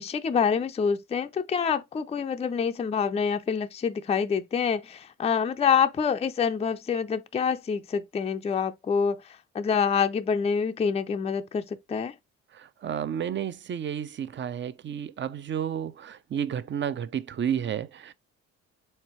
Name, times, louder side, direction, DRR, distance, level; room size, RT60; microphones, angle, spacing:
voice 1, 0.0-12.1, left 6 dB, 20° left, 0.4 m, -26 dB
voice 2, 12.5-18.1, right 9 dB, 40° right, 0.5 m, -31 dB
4.5 x 3.3 x 3.0 m
cardioid pair, 90°, 30 cm